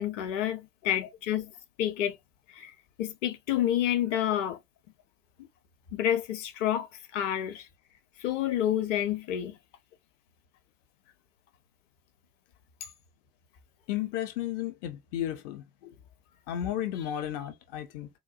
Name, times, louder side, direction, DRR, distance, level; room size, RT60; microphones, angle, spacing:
voice 1, 0.0-1.5 1.8-2.1 2.6-2.7 3.0-4.6 5.9-7.7 8.2-9.5 15.8-15.9, left 11 dB, 50° left, 0.8 m, -29 dB
voice 2, 13.9-15.6 16.5-18.1, left 11 dB, 25° left, 0.3 m, -33 dB
3.7 x 2.2 x 2.4 m
figure-of-eight pair, 75°, 47 cm